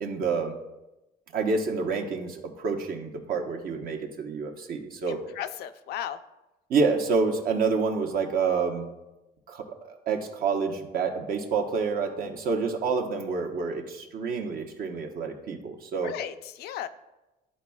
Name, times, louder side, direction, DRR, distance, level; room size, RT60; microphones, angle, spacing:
voice 1, 0.0-0.6 1.3-5.2 6.7-8.9 9.5-16.1, right 4 dB, 60° right, 3 dB, 1.0 m, -28 dB
voice 2, 5.1-6.2 16.0-16.9, left 10 dB, 70° left, 11 dB, 0.5 m, -35 dB
12.5 x 4.2 x 2.3 m, 1.0 s
cardioid pair, 110°, 17 cm